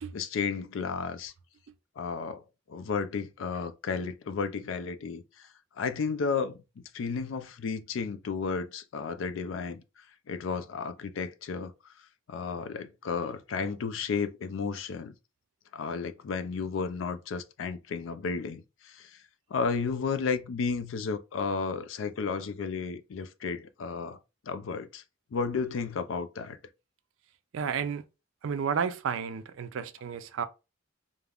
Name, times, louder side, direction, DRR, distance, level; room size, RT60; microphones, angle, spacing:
voice 1, 0.1-1.3 2.0-2.4 2.7-5.5 5.8-9.8 10.3-11.9 12.3-15.1 15.7-19.2 19.5-24.2 24.4-25.0 25.3-26.6, left 5 dB, 75° left, 0.4 m, -33 dB
voice 2, 27.5-28.0 28.4-30.5, right 6 dB, 75° right, 0.3 m, -31 dB
2.4 x 2.0 x 3.3 m
head